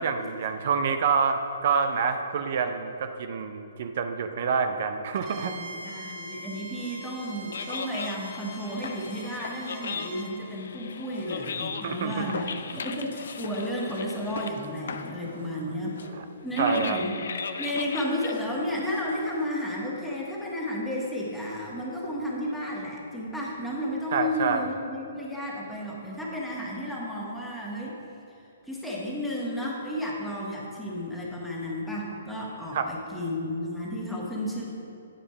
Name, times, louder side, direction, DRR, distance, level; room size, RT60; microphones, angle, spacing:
voice 1, 0.0-5.5 11.8-12.3 15.4-15.5 16.1-16.2 16.6-17.0 24.1-24.7 32.7-32.9, right 6 dB, 50° right, 7 dB, 0.5 m, -27 dB
Bowed string instrument, 5.2-10.3, right 1 dB, 35° right, 1.3 m, -43 dB
voice 2, 5.3-12.4 12.7-16.0 16.4-17.1 17.6-28.0 28.7-34.6, equal, 5° left, -5 dB, 1.5 m, -32 dB
sound 1, 7.2-19.5, left 5 dB, 65° left, 0.5 m, -38 dB
8.9 x 5.0 x 5.6 m, 2.7 s
figure-of-eight pair, 125°, 0 cm